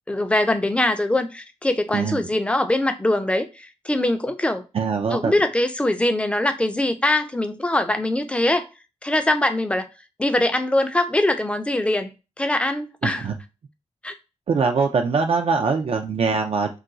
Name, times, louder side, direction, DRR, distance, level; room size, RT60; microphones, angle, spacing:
voice 1, 0.1-4.6 5.1-8.7 9.0-9.9 10.2-13.3 14.0-14.1, left 1 dB, 10° left, 0.4 m, -22 dB
voice 2, 4.7-5.3 13.0-13.3 14.5-16.8, right 5 dB, 55° right, 0.4 m, -22 dB
2.4 x 2.3 x 3.9 m
cardioid pair, 85°, 12 cm